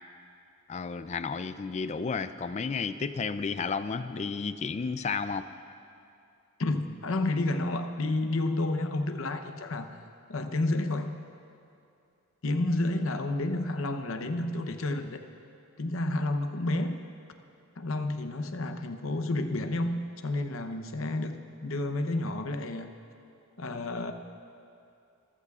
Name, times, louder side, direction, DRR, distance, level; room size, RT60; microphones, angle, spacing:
voice 1, 0.7-5.5, left 5 dB, 30° left, 12 dB, 0.3 m, -32 dB
voice 2, 6.6-10.0 10.3-11.1 12.4-15.2 15.8-17.0 17.8-22.9 23.6-24.1, left 2 dB, 65° left, 7 dB, 0.8 m, -30 dB
25.0 x 15.0 x 2.4 m, 2.6 s
head